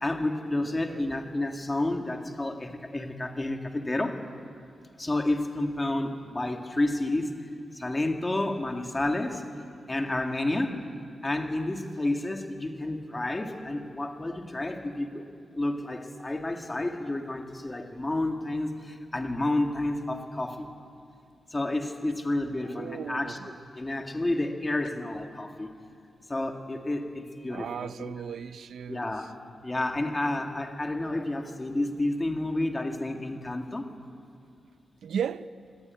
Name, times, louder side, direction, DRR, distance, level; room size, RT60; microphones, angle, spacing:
voice 1, 0.0-4.1 5.0-7.3 7.8-9.4 9.9-10.8 11.2-15.2 15.5-18.7 19.1-20.7 21.5-25.7 26.3-28.2 28.9-29.3 29.6-33.9, left 2 dB, 15° left, 4 dB, 2.1 m, -30 dB
voice 2, 22.7-23.5 27.5-29.1 35.0-35.5, right 8 dB, 80° right, 13 dB, 0.6 m, -35 dB
26.0 x 21.0 x 9.6 m, 2.3 s
wide cardioid pair, 170°, 0 cm